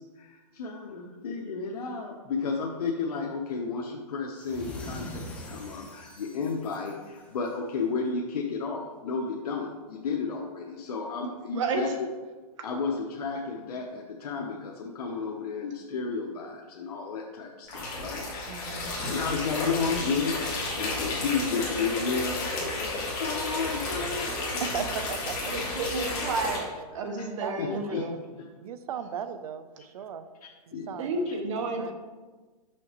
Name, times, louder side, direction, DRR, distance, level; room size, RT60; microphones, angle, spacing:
voice 1, 0.0-12.1 12.6-20.4 20.8-24.9 25.6-26.1 27.0-27.3 27.6-28.0 28.4-28.5 30.7-31.3, left 4 dB, 75° left, -1 dB, 0.9 m, -33 dB
sound 1, 4.3-7.7, left 1 dB, 5° left, 0.5 m, -43 dB
voice 2, 11.5-12.0 25.5-28.2 31.0-31.9, right 3 dB, 50° right, 4 dB, 1.1 m, -31 dB
sound 2, 17.7-26.6, left 2 dB, 20° left, 1.5 m, -32 dB
voice 3, 18.5-19.0 24.6-25.7 26.7-26.8 27.4-27.9 28.6-30.3 30.7-31.2 31.6-31.9, right 8 dB, 70° right, 11 dB, 0.6 m, -37 dB
6.1 x 5.8 x 3.0 m, 1.3 s
hypercardioid pair, 160°, 20 cm